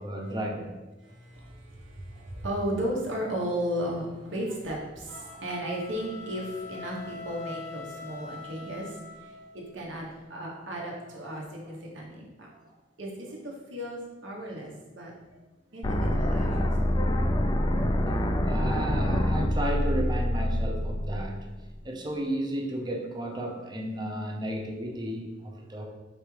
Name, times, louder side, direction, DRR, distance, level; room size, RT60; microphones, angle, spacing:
voice 1, 0.0-0.8 18.1-18.2 18.4-21.5 21.8-25.9, right 1 dB, 20° right, 0 dB, 0.6 m, -33 dB
voice 2, 1.0-15.1 15.7-17.3, equal, 70° right, -2 dB, 1.1 m, -35 dB
sound 1, 5.1-9.6, left 3 dB, 40° right, 1.2 m, -43 dB
sound 2, 15.8-21.8, left 1 dB, 20° left, 0.3 m, -26 dB
4.8 x 3.5 x 3.2 m, 1.1 s
head